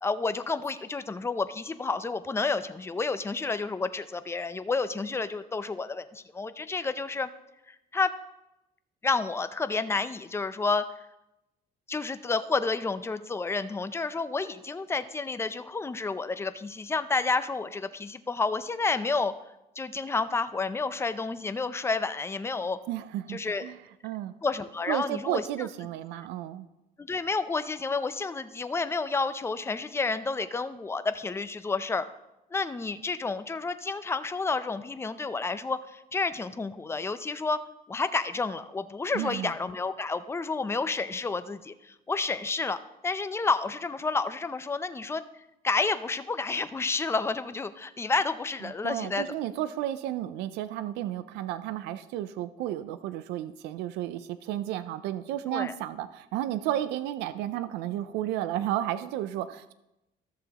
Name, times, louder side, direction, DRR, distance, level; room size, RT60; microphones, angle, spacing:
voice 1, 0.0-7.3 7.7-8.1 9.0-10.8 11.9-19.3 19.8-22.8 23.3-23.7 24.4-25.7 27.0-32.1 32.5-37.6 37.9-45.2 45.6-49.2 55.5-55.7, left 4 dB, 15° left, 12 dB, 0.5 m, -30 dB
voice 2, 22.9-23.8 24.0-24.3 24.9-26.7 39.1-39.5 48.6-59.7, right 12 dB, 90° right, 13 dB, 0.4 m, -32 dB
13.5 x 6.9 x 2.9 m, 0.92 s
cardioid pair, 110°, 17 cm